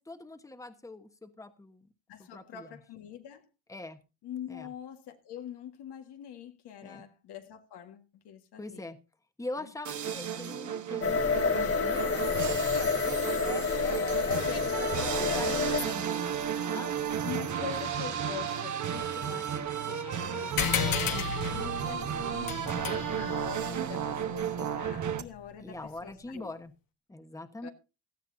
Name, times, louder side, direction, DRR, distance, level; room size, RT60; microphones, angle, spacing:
voice 1, 0.0-1.9 2.2-2.8 3.7-4.0 4.5-4.7 6.8-7.1 8.6-9.0 9.4-15.5 15.8-16.3 16.7-16.9 18.9-19.1 21.1-21.4 25.6-26.7 27.1-27.7, left 2 dB, 10° left, 1.2 m, -43 dB
voice 2, 2.1-3.5 4.2-8.9 9.6-9.7 12.7-12.9 14.3-16.1 17.2-19.5 19.9-26.5 27.6-27.7, left 9 dB, 80° left, 1.8 m, -44 dB
sound 1, 9.8-25.2, right 8 dB, 45° right, 1.3 m, -33 dB
sound 2, 11.0-15.9, left 5 dB, 35° left, 1.6 m, -29 dB
sound 3, 20.6-25.5, left 7 dB, 60° left, 1.7 m, -34 dB
17.0 x 12.5 x 2.7 m
cardioid pair, 85°, 39 cm